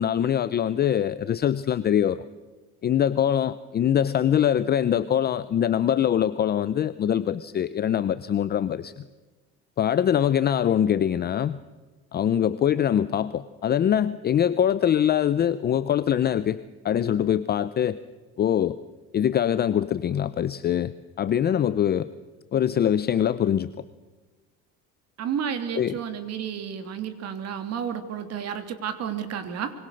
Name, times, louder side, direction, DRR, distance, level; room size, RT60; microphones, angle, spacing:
voice 1, 0.0-2.2 2.8-8.9 9.8-11.6 12.1-16.6 16.8-18.0 18.4-18.8 19.1-20.9 21.2-22.1 22.5-23.7 25.8-26.0, left 9 dB, 30° left, 14 dB, 0.7 m, -23 dB
voice 2, 25.2-29.7, right 8 dB, 50° right, 8 dB, 3.1 m, -31 dB
25.5 x 24.0 x 6.6 m, 1.3 s
cardioid pair, 140°, 32 cm